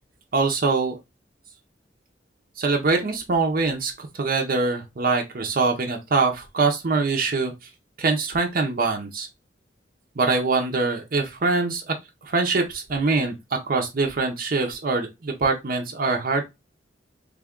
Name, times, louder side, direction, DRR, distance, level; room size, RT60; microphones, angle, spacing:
voice 1, 0.3-0.9 2.6-7.5 8.0-9.3 10.2-11.9 12.2-16.4, right 3 dB, 55° right, 0.6 m, -23 dB
3.4 x 2.3 x 3.6 m
head